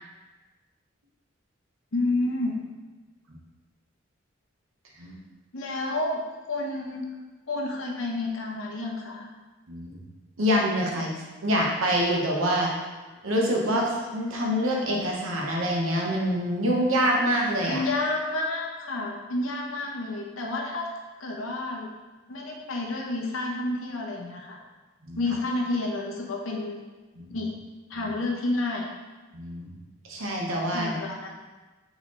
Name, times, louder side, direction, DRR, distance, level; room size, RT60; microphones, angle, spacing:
voice 1, 1.9-2.6 5.5-6.2 6.5-7.0 7.5-9.3 17.7-20.9 21.2-21.9 22.3-24.6 25.2-26.8 27.3-27.5 27.9-28.9 30.7-31.4, left 2 dB, 90° left, -1 dB, 0.8 m, -30 dB
voice 2, 10.4-11.1 11.4-12.7 13.2-17.8 25.1-25.2 27.1-27.4 27.9-28.1 29.3-29.7 30.0-30.9, equal, 85° right, -1 dB, 0.9 m, -26 dB
4.4 x 3.9 x 3.0 m, 1.2 s
head